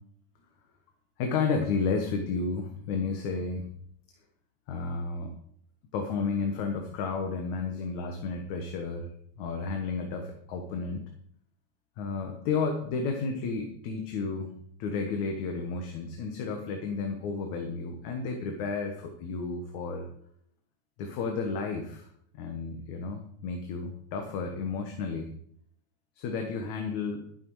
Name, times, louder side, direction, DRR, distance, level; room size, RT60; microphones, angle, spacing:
voice 1, 1.2-3.7 4.7-5.3 5.9-9.1 9.4-11.0 12.0-14.5 14.8-20.1 21.0-22.0 22.4-25.3 26.2-27.3, left 4 dB, 70° left, 3 dB, 2.6 m, -32 dB
11.5 x 11.5 x 4.8 m, 0.67 s
omnidirectional pair, 3.6 m